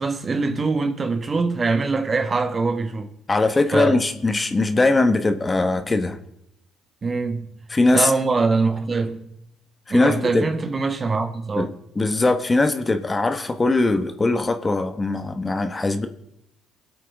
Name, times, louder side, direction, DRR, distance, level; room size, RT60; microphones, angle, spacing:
voice 1, 0.0-3.1 3.7-3.9 7.0-7.6 7.9-9.3 9.9-11.7, right 4 dB, 40° right, 1.5 m, -23 dB
voice 2, 3.3-6.2 7.7-8.1 9.9-10.5 11.6-11.7 12.0-16.1, left 2 dB, 25° left, 1.3 m, -20 dB
22.0 x 8.5 x 3.6 m
supercardioid pair, 65°, 0 cm